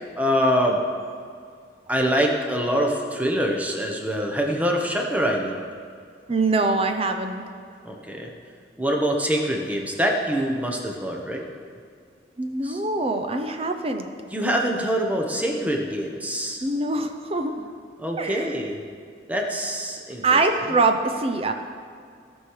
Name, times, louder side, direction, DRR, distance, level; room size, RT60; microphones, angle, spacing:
voice 1, 0.2-0.8 1.9-5.6 7.8-8.3 8.8-11.4 12.6-12.8 14.3-16.6 18.0-18.8 19.3-20.4, equal, 10° right, 1 dB, 1.1 m, -24 dB
voice 2, 6.3-7.5 12.4-14.1 16.6-17.7 18.2-18.7 20.2-21.5, right 3 dB, 35° right, 6 dB, 0.8 m, -24 dB
17.5 x 6.4 x 4.8 m, 2.3 s
head